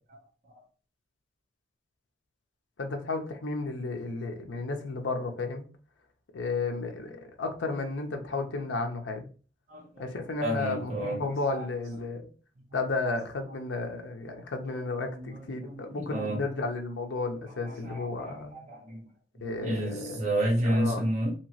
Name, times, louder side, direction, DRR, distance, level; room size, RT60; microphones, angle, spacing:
voice 1, 2.8-5.6 6.3-9.3 10.0-12.3 12.7-18.6 19.4-20.3 20.6-21.0, left 3 dB, 80° left, 0.6 m, -33 dB
voice 2, 9.7-11.2 11.5-11.7 12.7-12.8 14.7-16.5 17.6-19.1 19.3-21.4, right 1 dB, 40° right, 0.9 m, -31 dB
2.9 x 2.8 x 2.8 m
head